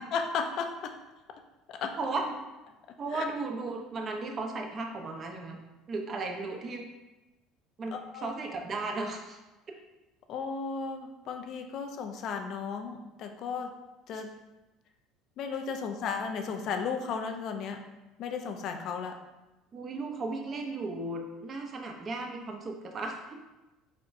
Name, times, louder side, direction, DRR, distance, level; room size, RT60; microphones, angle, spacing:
voice 1, 0.1-1.0 1.7-2.0 3.1-3.2 7.9-8.3 10.3-13.7 14.1-14.4 15.4-17.9 18.2-19.2, left 5 dB, 60° left, 5 dB, 0.5 m, -34 dB
voice 2, 2.0-2.3 3.0-5.6 5.9-6.9 7.8-9.4 14.1-14.2 19.7-23.4, right 3 dB, 40° right, 3 dB, 0.7 m, -35 dB
4.5 x 4.1 x 2.6 m, 1.1 s
supercardioid pair, 100°, 0 cm